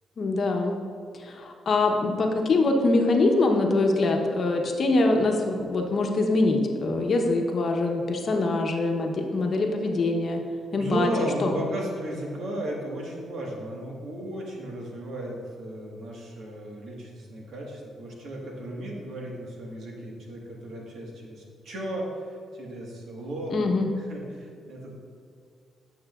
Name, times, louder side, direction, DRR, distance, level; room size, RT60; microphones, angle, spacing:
voice 1, 0.2-0.7 1.2-10.4 10.7-11.5 23.5-23.9, left 2 dB, 55° left, 2 dB, 0.9 m, -24 dB
voice 2, 10.7-23.6 24.0-24.9, right 1 dB, 70° right, -2 dB, 1.5 m, -35 dB
8.7 x 6.3 x 2.4 m, 2.3 s
cardioid pair, 75°, 0 cm